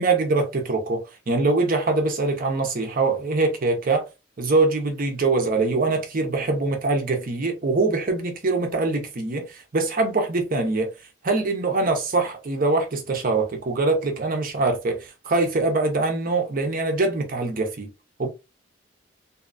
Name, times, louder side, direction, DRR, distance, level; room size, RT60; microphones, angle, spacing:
voice 1, 0.0-4.1 4.4-10.9 11.2-17.9 18.2-18.3, right 3 dB, 45° right, 0.7 m, -23 dB
2.7 x 2.3 x 2.5 m
head